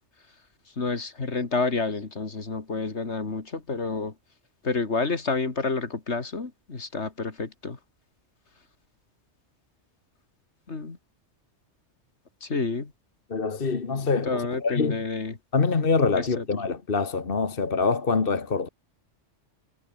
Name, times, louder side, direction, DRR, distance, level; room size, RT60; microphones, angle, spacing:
voice 1, 0.8-4.1 4.6-7.8 10.7-11.0 12.4-12.9 14.0-15.4 16.1-16.4, left 3 dB, 65° left, 2.7 m, -29 dB
voice 2, 13.3-15.0 15.5-18.7, left 4 dB, 50° left, 1.8 m, -25 dB
omnidirectional pair, 1.2 m